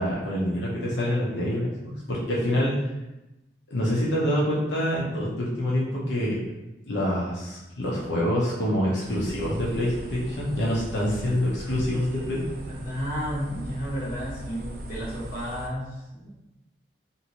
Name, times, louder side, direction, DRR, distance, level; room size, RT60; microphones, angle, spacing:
voice 1, 0.0-2.7 3.7-6.4 6.9-12.4, equal, 80° left, -6 dB, 0.7 m, -26 dB
sound 1, 9.0-15.7, right 1 dB, 50° right, 0.4 m, -39 dB
voice 2, 12.7-16.3, equal, 45° left, -7 dB, 0.9 m, -32 dB
2.7 x 2.6 x 2.9 m, 0.97 s
head